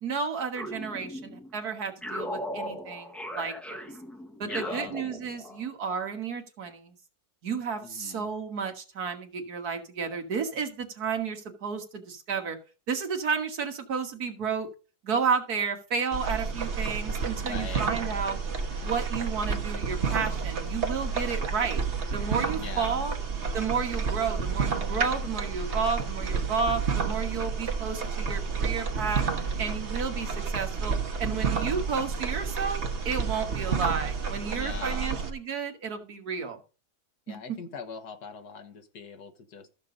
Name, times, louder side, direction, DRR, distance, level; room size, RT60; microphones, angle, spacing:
voice 1, 0.0-3.9 4.4-6.9 7.4-12.6 12.9-14.7 15.0-18.4 18.8-21.8 22.1-23.2 23.5-29.2 29.6-36.6 37.3-37.4, right 5 dB, 70° right, 5 dB, 2.0 m, -32 dB
sound 1, 0.5-1.5 2.0-5.7, left 1 dB, ahead, 0.9 m, -37 dB
voice 2, 4.4-5.0 7.8-8.3 17.4-18.0 22.5-23.1 34.5-35.2 37.3-39.7, left 6 dB, 75° left, 8 dB, 1.8 m, -42 dB
sound 2, 16.1-35.3, right 5 dB, 45° right, 1.5 m, -30 dB
14.0 x 6.8 x 3.9 m, 0.35 s
omnidirectional pair, 1.7 m